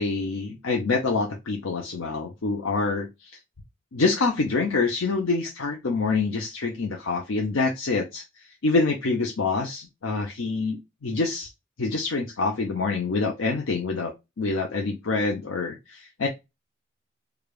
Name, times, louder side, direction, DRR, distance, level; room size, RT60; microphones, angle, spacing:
voice 1, 0.0-3.3 3.9-8.2 8.6-11.5 11.8-14.1 14.4-16.3, left 3 dB, 80° left, 1 dB, 0.7 m, -26 dB
4.9 x 2.4 x 2.3 m, 0.22 s
head